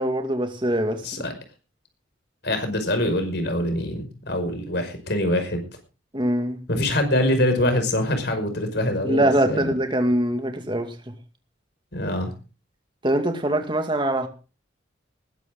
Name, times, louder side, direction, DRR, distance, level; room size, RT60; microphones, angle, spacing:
voice 1, 0.0-1.2 6.1-6.6 9.0-11.1 13.0-14.3, right 1 dB, 25° right, 2.4 m, -23 dB
voice 2, 2.4-5.6 6.7-9.6 11.9-12.3, left 1 dB, 60° left, 5.4 m, -24 dB
20.5 x 12.0 x 3.8 m
head